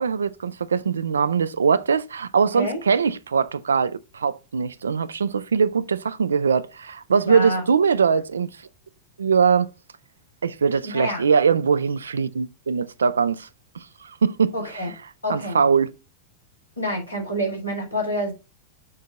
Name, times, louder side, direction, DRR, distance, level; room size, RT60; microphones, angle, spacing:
voice 1, 0.0-8.5 9.2-9.7 10.4-13.5 13.8-14.5 15.3-15.9, right 6 dB, 70° right, 0.4 m, -21 dB
voice 2, 7.2-7.6 10.8-11.2 14.5-14.9 15.2-15.6 16.8-18.3, equal, 80° left, 2.5 m, -27 dB
6.6 x 2.8 x 5.1 m
figure-of-eight pair, 90°, 0 cm